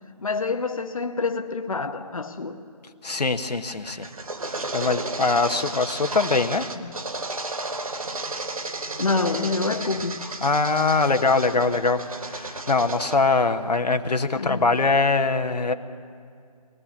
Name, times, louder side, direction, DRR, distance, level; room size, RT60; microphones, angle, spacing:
voice 1, 0.2-2.6 6.8-6.9 9.0-10.3 14.4-14.7, left 3 dB, 60° left, 5 dB, 1.1 m, -27 dB
voice 2, 3.0-4.1 4.4-6.7 10.4-15.7, left 3 dB, 85° left, 7 dB, 1.2 m, -23 dB
sound 1, 3.5-13.2, right 2 dB, 60° right, 1.3 m, -33 dB
22.5 x 19.0 x 7.2 m, 2.3 s
figure-of-eight pair, 175°, 20 cm